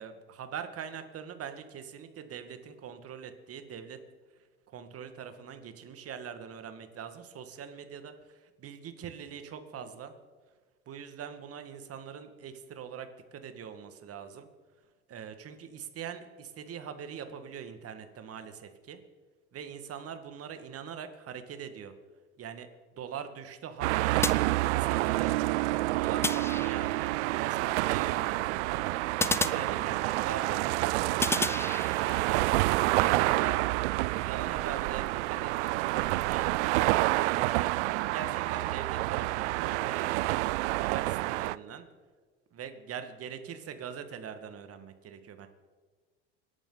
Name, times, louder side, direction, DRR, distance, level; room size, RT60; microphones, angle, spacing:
voice 1, 0.0-4.0 4.7-10.1 10.9-14.5 15.1-19.0 19.5-21.9 22.4-22.7 22.9-25.4 25.9-26.9 27.2-28.9 29.4-31.5 32.0-33.6 34.2-37.7 38.1-40.4 40.8-41.9 42.5-45.5, right 8 dB, 40° right, 9 dB, 1.8 m, -42 dB
sound 1, 23.8-41.6, right 19 dB, 70° right, 0.5 m, -28 dB
sound 2, 24.2-25.1 26.2-27.1 29.2-30.3 31.2-32.3, left 2 dB, 5° left, 0.6 m, -33 dB
26.0 x 11.0 x 4.0 m, 1.4 s
hypercardioid pair, 80°, 36 cm